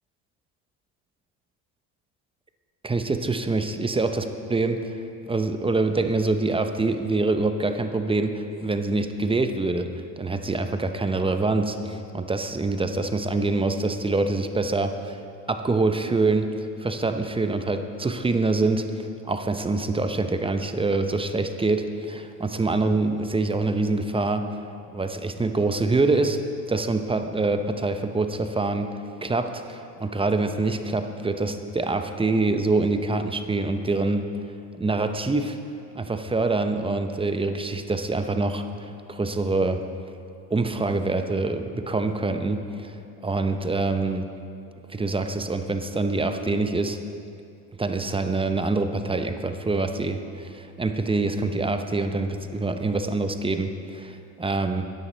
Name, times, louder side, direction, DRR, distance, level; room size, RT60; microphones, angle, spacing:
voice 1, 2.8-5.0 5.3-9.9 10.2-15.2 15.5-24.4 24.9-26.4 26.7-28.9 29.2-34.3 34.7-35.6 35.9-39.8 40.5-42.9 43.2-44.3 44.9-47.0 47.8-54.9, right 3 dB, 10° right, 7 dB, 0.8 m, -25 dB
14.0 x 9.7 x 4.0 m, 2.5 s
supercardioid pair, 80°, 44 cm